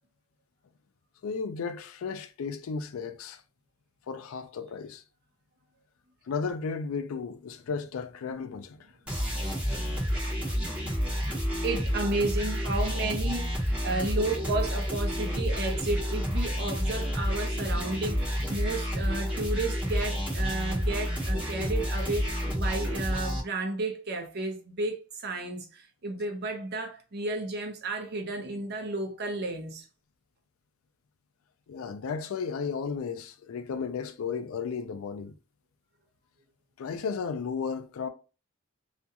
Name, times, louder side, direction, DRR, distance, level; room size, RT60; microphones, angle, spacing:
voice 1, 1.2-3.4 4.1-5.0 6.3-8.9 9.6-9.9 31.7-35.3 36.8-38.1, left 5 dB, 90° left, 0.4 m, -34 dB
sound 1, 9.1-23.4, equal, 5° right, 0.8 m, -29 dB
voice 2, 11.3-22.3 22.6-29.9, right 2 dB, 50° right, 0.6 m, -32 dB
2.4 x 2.2 x 2.7 m
head